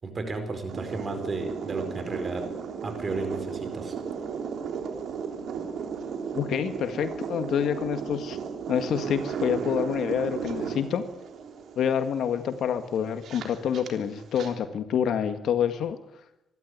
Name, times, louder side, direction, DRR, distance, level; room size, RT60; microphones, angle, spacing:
voice 1, 0.0-2.5 2.8-3.9, right 3 dB, 35° right, 7 dB, 4.7 m, -33 dB
sound 1, 0.7-14.5, right 6 dB, 70° right, 3.4 m, -35 dB
voice 2, 6.3-8.4 8.7-11.0 11.8-16.0, left 8 dB, 70° left, 9 dB, 1.8 m, -27 dB
25.5 x 12.5 x 9.9 m, 0.89 s
cardioid pair, 90°, 0 cm